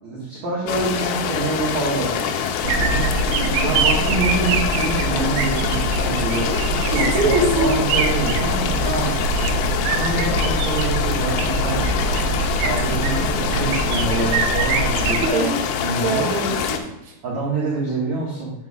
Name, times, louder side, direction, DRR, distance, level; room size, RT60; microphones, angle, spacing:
voice 1, 0.0-3.1 3.6-6.5 6.9-9.1 9.8-12.0 12.6-15.3 15.7-16.3 17.2-18.5, right 2 dB, 65° right, -6 dB, 1.8 m, -26 dB
sound 1, 0.7-16.8, left 8 dB, 80° left, 3.2 m, -25 dB
sound 2, 2.6-15.3, right 3 dB, 80° right, 2.8 m, -23 dB
voice 2, 6.9-7.8 15.2-15.7 16.0-17.1, right 2 dB, 50° right, -4 dB, 1.7 m, -23 dB
9.4 x 9.0 x 2.4 m, 0.88 s
omnidirectional pair, 6.0 m